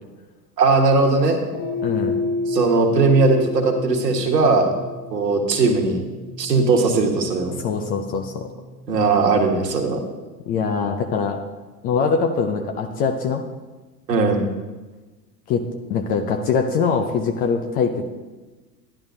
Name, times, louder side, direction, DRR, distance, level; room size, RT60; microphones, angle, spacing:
voice 1, 0.6-1.4 2.5-4.7 5.1-6.0 6.4-7.6 8.9-10.0 14.1-14.4, right 3 dB, 80° right, 4 dB, 1.5 m, -18 dB
sound 1, 1.5-10.0, left 3 dB, 40° left, 1.6 m, -30 dB
voice 2, 1.8-2.2 7.6-8.5 10.5-11.4 11.8-13.4 15.5-15.6 15.9-18.1, left 5 dB, 20° left, 5 dB, 0.4 m, -22 dB
11.0 x 10.5 x 2.7 m, 1.2 s
figure-of-eight pair, 95°, 49 cm